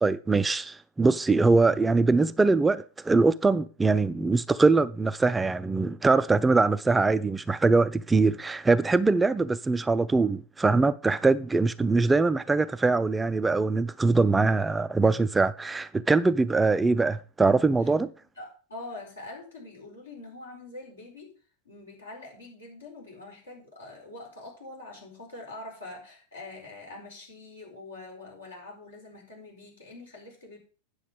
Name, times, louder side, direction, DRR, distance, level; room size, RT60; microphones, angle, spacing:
voice 1, 0.0-18.1, right 3 dB, 10° right, 0.4 m, -23 dB
voice 2, 18.2-21.3 21.6-30.6, left 2 dB, 75° left, 4.6 m, -44 dB
9.4 x 7.0 x 5.2 m
figure-of-eight pair, 90°, 0 cm